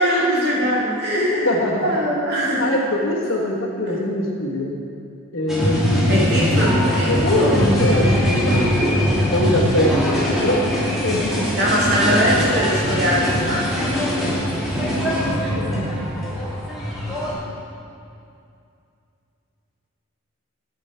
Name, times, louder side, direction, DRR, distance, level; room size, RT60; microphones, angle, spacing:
voice 1, 0.0-1.6 1.8-2.7 6.1-7.7 9.9-10.0 11.6-13.9, equal, 50° right, -6 dB, 2.2 m, -21 dB
voice 2, 1.1-1.9 2.6-4.7 5.3-6.5 7.1-9.0 9.3-10.7 11.0-11.5 15.2-15.9, left 1 dB, 65° left, -1 dB, 1.3 m, -23 dB
sound 1, 5.5-17.3, equal, ahead, 2.0 m, -21 dB
10.0 x 8.1 x 4.4 m, 2.5 s
head